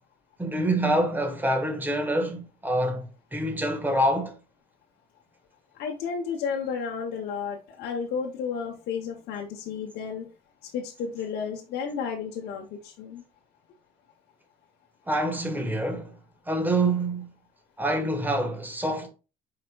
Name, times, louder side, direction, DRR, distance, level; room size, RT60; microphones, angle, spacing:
voice 1, 0.4-4.4 15.1-16.1 16.5-17.3 17.8-19.1, right 1 dB, 10° right, 1.2 m, -26 dB
voice 2, 5.8-10.3 10.7-13.2, left 6 dB, 75° left, 0.9 m, -32 dB
4.9 x 4.3 x 2.2 m
cardioid pair, 110°, 17 cm